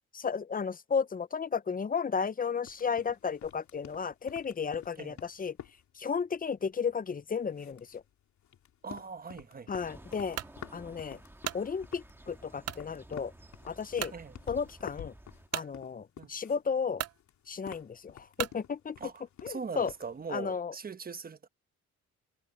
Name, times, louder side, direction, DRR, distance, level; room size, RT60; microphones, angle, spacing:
voice 1, 0.1-5.6 6.0-8.0 9.7-10.4 10.7-11.2 11.5-13.3 13.6-14.1 14.5-15.1 15.5-17.0 17.5-19.0 19.4-19.9 20.3-20.7, left 6 dB, 30° left, 0.8 m, -33 dB
sound 1, 2.6-7.1 7.5-16.7 17.0-20.2, left 10 dB, 70° left, 3.1 m, -50 dB
voice 2, 8.8-9.7 14.1-14.3 16.2-16.3 19.0-21.5, right 5 dB, 30° right, 1.3 m, -41 dB
sound 2, 9.7-15.5, right 1 dB, 10° right, 1.6 m, -53 dB
sound 3, 10.3-10.6 11.1-11.7 12.6-12.9 13.4-13.5 14.0-14.2 15.5-15.7 16.5-16.6 16.9-17.2 18.4-18.6, right 12 dB, 55° right, 0.7 m, -36 dB
cardioid pair, 90°, 30 cm